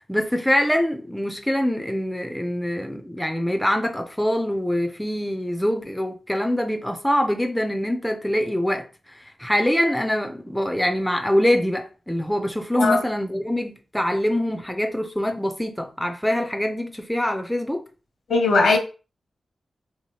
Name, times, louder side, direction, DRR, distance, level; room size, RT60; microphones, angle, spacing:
voice 1, 0.0-8.9 9.1-17.8, left 1 dB, 5° left, 0.3 m, -24 dB
voice 2, 18.3-18.8, left 3 dB, 75° left, 0.8 m, -18 dB
2.9 x 2.7 x 3.0 m
wide cardioid pair, 150°, 0 cm